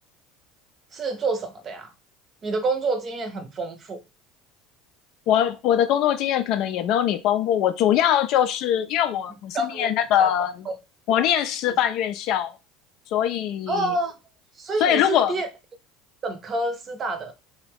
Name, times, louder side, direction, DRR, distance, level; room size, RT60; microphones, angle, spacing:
voice 1, 0.9-1.9 2.4-4.0 9.5-9.9 10.2-10.8 13.7-14.1 14.6-15.5 16.2-17.3, right 2 dB, 40° right, 0.7 m, -28 dB
voice 2, 5.3-10.5 11.1-12.5 13.1-13.9 14.8-15.4, left 10 dB, 60° left, 0.4 m, -22 dB
2.5 x 2.2 x 3.3 m
hypercardioid pair, 75°, 0 cm